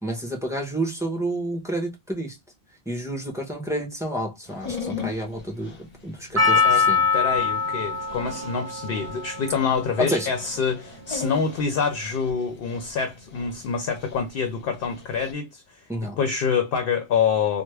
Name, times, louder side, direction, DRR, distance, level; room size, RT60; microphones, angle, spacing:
voice 1, 0.0-2.4 2.9-5.8 6.0-7.0 10.0-10.3 15.9-16.2, right 1 dB, 5° right, 0.8 m, -29 dB
Dog, 4.5-15.3, left 5 dB, 40° left, 1.0 m, -40 dB
Percussion, 6.4-10.7 11.4-11.5, left 5 dB, 30° right, 1.3 m, -24 dB
voice 2, 7.1-15.9 16.2-17.6, left 6 dB, 70° left, 0.7 m, -26 dB
3.4 x 2.1 x 3.2 m
omnidirectional pair, 1.0 m